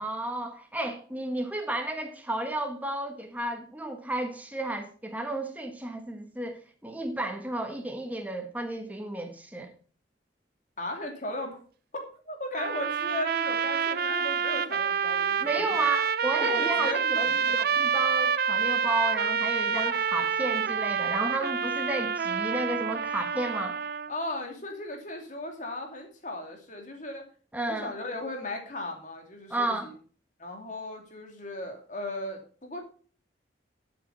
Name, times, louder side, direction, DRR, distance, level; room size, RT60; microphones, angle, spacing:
voice 1, 0.0-9.7 15.4-23.8 27.5-27.9 29.5-29.9, right 2 dB, 10° right, 1.3 m, -32 dB
voice 2, 10.8-11.6 11.9-15.8 16.4-17.6 24.1-27.3 27.7-29.9 30.4-32.8, left 1 dB, 45° left, 2.8 m, -37 dB
sound 1, 12.6-24.1, right 6 dB, 55° right, 0.5 m, -27 dB
12.0 x 7.9 x 4.1 m
head